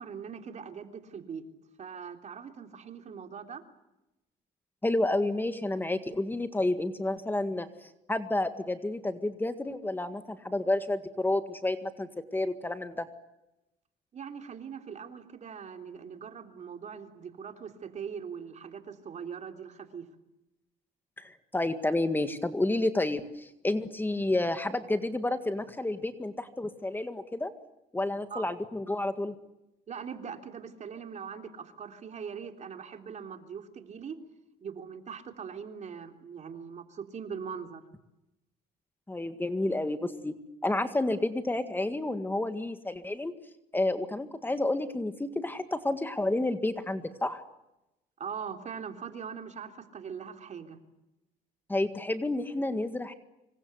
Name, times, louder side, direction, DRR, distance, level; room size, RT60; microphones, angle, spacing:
voice 1, 0.0-1.4 1.8-3.6 14.1-20.0 28.3-28.4 29.9-34.2 34.6-37.8 48.2-50.8, right 6 dB, 45° right, 6 dB, 3.4 m, -41 dB
voice 2, 4.8-13.1 21.2-27.5 27.9-29.3 39.1-40.3 40.6-43.3 43.7-47.5 51.7-53.1, left 2 dB, 10° left, 9 dB, 1.9 m, -30 dB
26.5 x 24.5 x 8.1 m, 0.94 s
cardioid pair, 110°, 17 cm